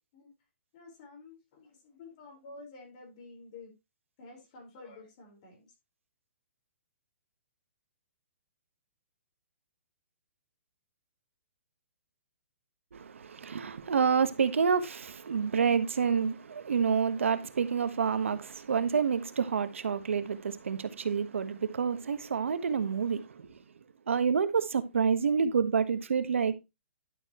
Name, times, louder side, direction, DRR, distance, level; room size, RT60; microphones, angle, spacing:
voice 1, 0.7-3.7 4.2-5.7, left 3 dB, 35° left, 4.5 m, -50 dB
voice 2, 12.9-23.6 24.1-26.5, right 6 dB, 90° right, 1.2 m, -28 dB
11.5 x 6.6 x 3.0 m
hypercardioid pair, 165°, 7 cm